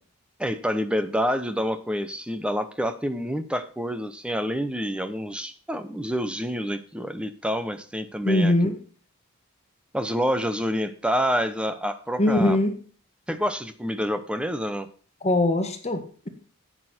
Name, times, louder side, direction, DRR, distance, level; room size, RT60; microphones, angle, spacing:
voice 1, 0.4-8.5 9.9-12.6 13.3-14.9, equal, 5° right, 10 dB, 0.8 m, -27 dB
voice 2, 8.2-8.8 12.2-12.7 15.2-16.3, left 1 dB, 30° left, 6 dB, 1.6 m, -21 dB
11.0 x 8.6 x 4.4 m, 0.41 s
head